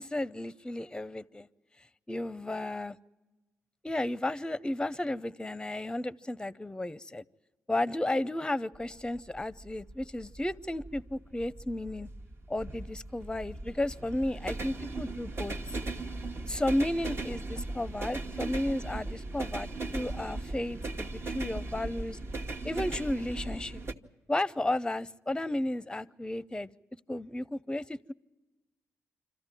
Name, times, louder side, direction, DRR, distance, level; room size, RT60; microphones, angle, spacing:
voice 1, 0.0-1.5 2.1-3.0 3.8-7.2 7.7-12.1 12.5-15.5 16.5-22.2 22.6-23.8 24.3-26.7 27.1-28.1, left 1 dB, 15° left, 18 dB, 0.7 m, -33 dB
sound 1, 8.7-23.9, right 2 dB, 45° right, 1.3 m, -38 dB
26.5 x 14.0 x 9.1 m, 1.1 s
cardioid pair, 65°, 6 cm